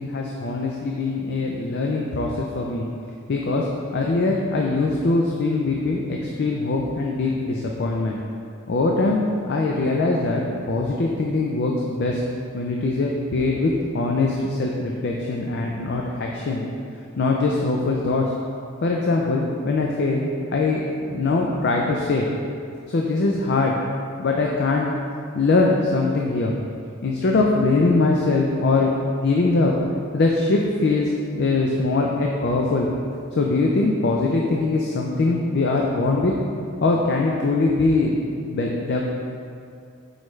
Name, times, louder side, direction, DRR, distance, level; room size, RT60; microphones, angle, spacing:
voice 1, 0.0-2.8 3.3-3.7 3.9-8.2 8.7-9.2 9.5-10.4 10.7-12.2 12.5-16.6 17.2-18.2 18.8-22.3 22.9-23.7 24.2-24.9 25.3-26.5 27.0-28.9 29.2-29.7 30.1-32.9 33.3-36.3 36.8-39.0, left 3 dB, 50° left, -1 dB, 0.4 m, -22 dB
6.3 x 4.7 x 3.2 m, 2.4 s
head